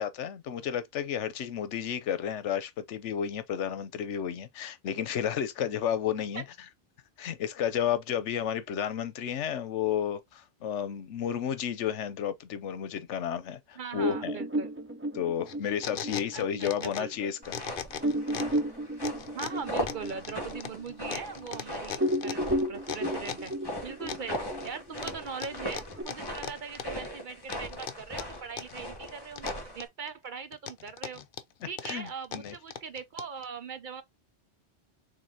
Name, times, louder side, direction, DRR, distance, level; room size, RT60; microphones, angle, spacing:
voice 1, 0.0-6.4 7.2-14.4 15.1-17.6 31.8-32.1 32.3-32.5, left 9 dB, 85° left, 1.0 m, -32 dB
voice 2, 13.8-14.7 16.3-17.1 19.3-23.5 23.8-31.2 31.7-34.0, right 6 dB, 55° right, 0.6 m, -40 dB
sound 1, 14.0-17.1 17.5-17.6 18.0-21.6 21.9-26.0, right 1 dB, 15° right, 0.6 m, -33 dB
sound 2, 15.5-17.2 17.4-18.6 19.0-23.6 24.1-24.7 25.0-27.1 27.5-28.8 29.1-30.1 30.5-33.4, left 8 dB, 55° left, 0.7 m, -39 dB
sound 3, 17.4-29.9, equal, 20° left, 1.9 m, -39 dB
5.2 x 3.6 x 2.7 m
omnidirectional pair, 1.2 m